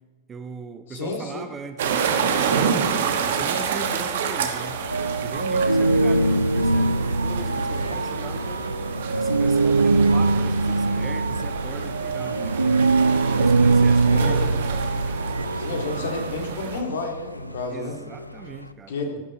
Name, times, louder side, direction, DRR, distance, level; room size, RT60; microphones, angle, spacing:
voice 1, 0.3-2.9 3.2-4.8 5.2-8.6 9.2-12.8 13.4-14.4 17.7-18.9, right 5 dB, 20° right, 8 dB, 1.0 m, -39 dB
voice 2, 0.9-1.5 14.0-14.5 15.5-18.0 18.9-19.2, left 3 dB, 60° left, 2 dB, 2.3 m, -30 dB
sound 1, 1.8-16.8, right 6 dB, 60° right, 1.2 m, -29 dB
Engine, 3.2-18.7, left 1 dB, 85° left, 0.5 m, -41 dB
sound 2, 4.9-17.7, right 3 dB, 80° right, 0.4 m, -22 dB
16.0 x 9.4 x 4.3 m, 1.3 s
figure-of-eight pair, 90°, 0 cm